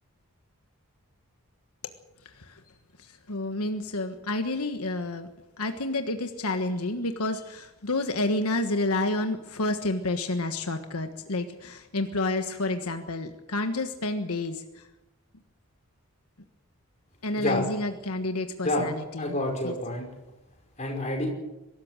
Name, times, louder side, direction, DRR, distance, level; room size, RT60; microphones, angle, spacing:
voice 1, 2.2-2.6 3.0-5.3 5.6-14.9 17.2-19.4 19.6-19.7, left 2 dB, 85° left, 7 dB, 1.4 m, -30 dB
voice 2, 19.2-20.1 20.8-21.3, left 1 dB, 30° left, 1 dB, 5.4 m, -28 dB
23.0 x 13.5 x 9.0 m, 1.0 s
head